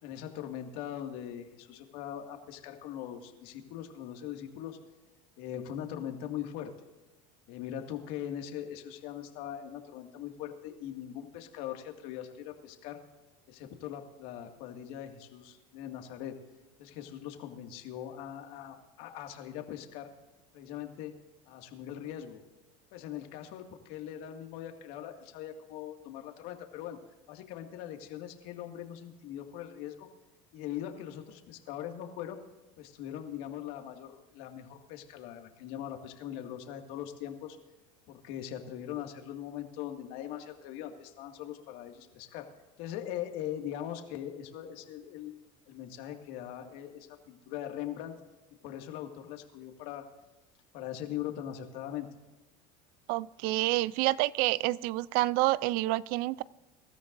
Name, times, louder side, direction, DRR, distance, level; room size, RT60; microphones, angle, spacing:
voice 1, 0.0-4.8 5.4-6.7 7.5-13.0 13.5-16.4 16.8-20.1 20.5-21.2 21.5-22.4 22.9-27.0 27.3-30.1 30.5-32.4 32.8-37.6 38.1-42.5 42.8-45.4 45.7-48.1 48.6-50.0 50.7-52.1, left 11 dB, 65° left, 4 dB, 2.2 m, -41 dB
voice 2, 53.1-56.4, right 18 dB, 60° right, 21 dB, 0.5 m, -28 dB
24.0 x 13.5 x 2.6 m, 1.1 s
supercardioid pair, 130°, 17 cm